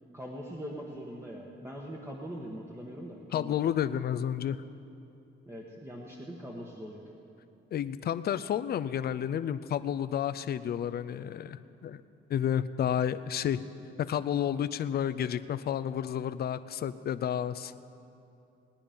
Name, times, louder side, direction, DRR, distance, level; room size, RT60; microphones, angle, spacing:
voice 1, 0.1-3.5 5.5-7.0, equal, 15° right, -2 dB, 1.3 m, -42 dB
voice 2, 3.3-4.6 7.7-12.0 12.3-13.6 14.0-17.7, left 9 dB, 50° left, 13 dB, 0.5 m, -31 dB
19.5 x 9.9 x 5.1 m, 2.7 s
cardioid pair, 90°, 20 cm